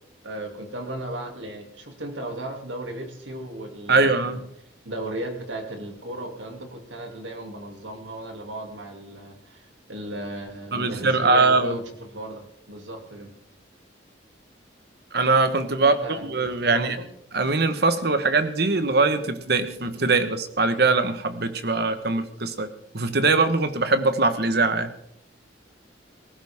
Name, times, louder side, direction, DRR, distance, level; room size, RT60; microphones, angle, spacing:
voice 1, 0.2-4.4 4.8-13.3 15.8-17.0, right 1 dB, 75° right, 3 dB, 2.8 m, -36 dB
voice 2, 3.9-4.4 10.7-11.8 15.1-17.0 17.3-22.7 22.9-24.9, right 3 dB, 55° right, 10 dB, 1.4 m, -22 dB
19.0 x 15.5 x 3.7 m, 0.73 s
head